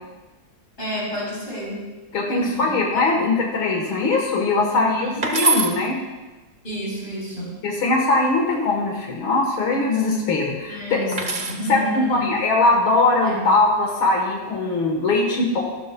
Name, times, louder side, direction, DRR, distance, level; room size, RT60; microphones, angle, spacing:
voice 1, 0.8-1.9 2.2-3.2 4.7-5.3 6.6-7.6 10.7-12.3 13.2-13.5, equal, 25° left, -4 dB, 4.1 m, -31 dB
voice 2, 2.1-6.0 7.6-11.0 11.7-15.6, left 3 dB, 85° left, 0 dB, 2.2 m, -21 dB
sound 1, 5.2-5.7 8.0-8.6 11.1-11.6 13.0-13.4, right 5 dB, 30° right, 1.0 m, -24 dB
14.5 x 12.5 x 2.3 m, 1.2 s
omnidirectional pair, 2.2 m